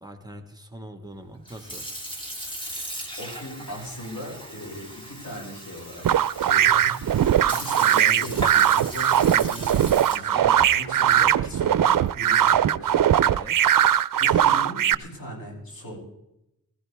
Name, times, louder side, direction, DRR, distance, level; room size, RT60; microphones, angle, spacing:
voice 1, 0.0-1.9 10.3-10.7 13.2-13.6, right 1 dB, 10° right, 5 dB, 1.6 m, -41 dB
Sink (filling or washing) / Fill (with liquid), 1.3-12.9, right 1 dB, 15° left, 2.9 m, -38 dB
voice 2, 2.9-6.1 6.4-10.4 10.7-13.0 14.2-16.0, equal, 90° left, -2 dB, 6.6 m, -38 dB
sound 1, 6.0-14.9, right 10 dB, 70° right, 0.5 m, -20 dB
20.0 x 15.0 x 3.5 m, 0.85 s
wide cardioid pair, 95°, 34 cm